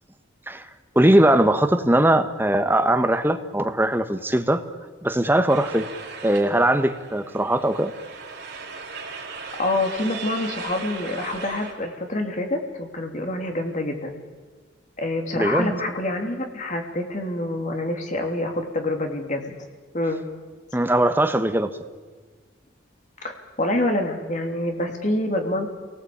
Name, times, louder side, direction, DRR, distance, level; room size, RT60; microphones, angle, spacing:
voice 1, 0.9-4.6 5.0-5.9 6.2-7.9 15.3-15.8 20.7-21.7, right 1 dB, 10° right, 7 dB, 1.2 m, -20 dB
sound 1, 5.5-11.7, right 4 dB, 50° right, 4.4 m, -37 dB
voice 2, 9.6-14.2 15.0-19.5 19.9-20.2 23.2-25.7, left 1 dB, 35° left, 3 dB, 3.1 m, -26 dB
27.5 x 19.0 x 8.7 m, 1.4 s
head